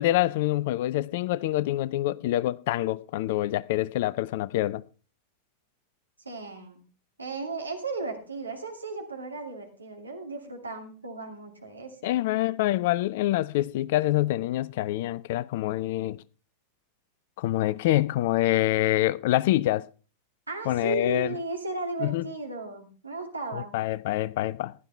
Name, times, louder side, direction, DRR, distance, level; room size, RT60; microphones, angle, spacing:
voice 1, 0.0-4.8 12.0-16.2 17.4-19.9 20.7-21.3 22.0-22.2 23.5-24.7, left 15 dB, 50° left, 0.5 m, -26 dB
voice 2, 6.2-6.8 7.2-12.2 20.5-23.7, right 3 dB, 80° right, 2.5 m, -35 dB
15.0 x 11.0 x 3.4 m
figure-of-eight pair, 90°, 0 cm